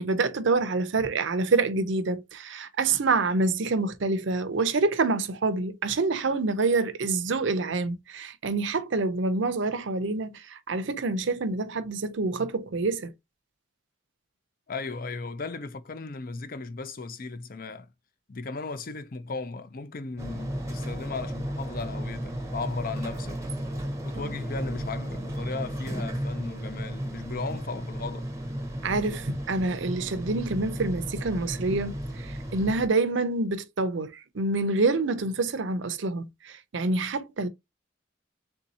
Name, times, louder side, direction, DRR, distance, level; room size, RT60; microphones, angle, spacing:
voice 1, 0.0-13.1 24.2-24.3 28.8-37.5, right 3 dB, 65° right, 0.6 m, -27 dB
voice 2, 14.7-17.9 18.3-23.4 24.0-28.3, left 3 dB, 45° left, 0.5 m, -36 dB
sound 1, 20.2-32.9, equal, 15° right, 0.7 m, -34 dB
3.6 x 2.7 x 4.1 m
head